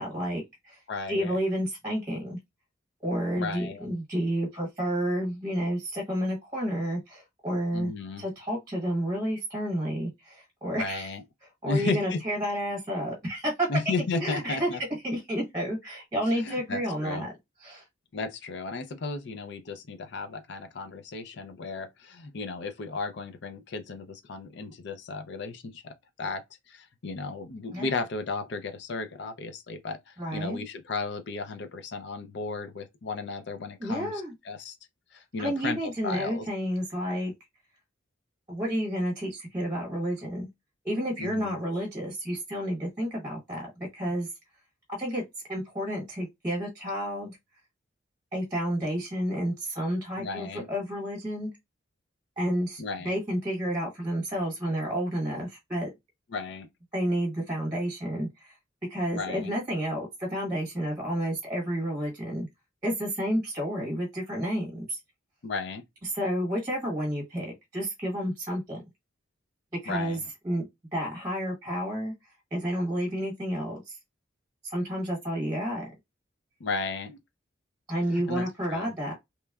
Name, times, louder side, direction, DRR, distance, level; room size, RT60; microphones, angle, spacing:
voice 1, 0.0-0.8 1.1-2.4 3.0-7.9 8.2-11.1 11.6-13.7 14.2-14.7 15.0-17.3 17.6-17.8 27.7-27.9 30.2-30.6 33.8-34.3 35.4-37.3 38.5-40.5 40.8-44.3 44.9-45.2 45.5-47.4 48.3-51.5 52.4-55.9 56.9-58.5 58.9-62.5 62.8-65.0 66.1-68.8 69.8-70.2 70.4-70.6 70.9-72.1 72.5-74.0 74.6-75.8 77.9-79.1, equal, 20° right, 1.1 m, -30 dB
voice 2, 0.9-1.4 3.4-3.9 7.7-8.2 10.7-11.2 11.7-12.2 13.7-14.8 16.3-17.3 18.1-26.4 26.7-34.8 35.1-36.4 41.2-41.6 50.2-50.7 52.8-53.1 56.3-56.7 59.1-59.5 65.4-65.8 69.9-70.3 76.6-77.2 78.1-78.4 78.7-78.9, left 3 dB, 60° left, 0.5 m, -34 dB
2.9 x 2.2 x 2.3 m
head